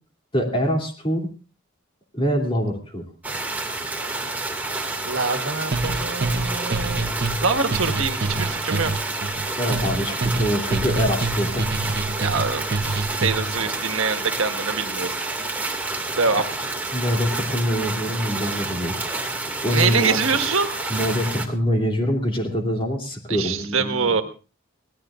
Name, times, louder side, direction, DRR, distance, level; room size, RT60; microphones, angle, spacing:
voice 1, 0.3-1.3 2.1-3.0 9.6-11.7 13.6-13.7 16.4-16.5 16.9-19.0 19.6-20.2 20.9-24.1, equal, 25° left, 2 dB, 2.9 m, -24 dB
sound 1, 3.2-21.5, right 2 dB, 10° right, 2.1 m, -29 dB
voice 2, 5.0-8.9 12.2-15.1 16.2-16.4 19.7-20.7 23.3-24.2, right 5 dB, 85° right, 8 dB, 1.5 m, -25 dB
sound 2, 5.7-13.6, right 2 dB, 50° right, 0.8 m, -26 dB
24.5 x 17.5 x 2.5 m, 0.34 s
head